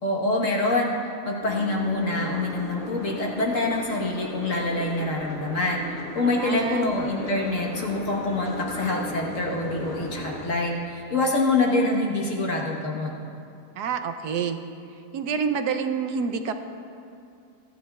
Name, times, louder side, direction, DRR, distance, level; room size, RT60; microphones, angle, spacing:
voice 1, 0.0-0.9 1.2-13.1, left 2 dB, 50° left, -1 dB, 1.5 m, -25 dB
Boat Water vehicle, 1.4-10.5, equal, 25° left, 1.0 m, -37 dB
voice 2, 6.3-6.9 13.8-14.6 15.1-16.5, right 6 dB, 75° right, 7 dB, 1.2 m, -27 dB
27.0 x 10.5 x 2.4 m, 2.5 s
omnidirectional pair, 1.8 m